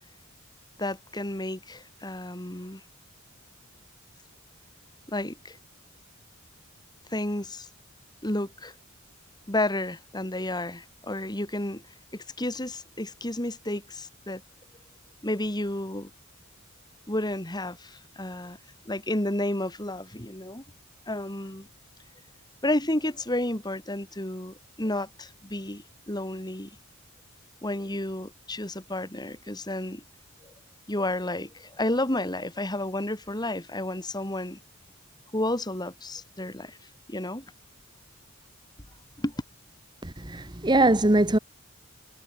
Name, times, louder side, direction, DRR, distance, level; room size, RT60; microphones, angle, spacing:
voice 1, 0.8-2.8 5.1-5.6 7.1-7.7 8.2-8.7 9.5-11.8 12.1-14.4 15.2-16.1 17.1-18.6 18.8-20.6 21.1-21.7 22.6-26.8 27.6-30.0 30.4-30.5 30.9-34.6 35.3-36.8 37.1-37.4 39.2-39.3, left 1 dB, 20° left, 3.1 m, -31 dB
voice 2, 40.0-41.4, right 2 dB, 20° right, 1.3 m, -22 dB
head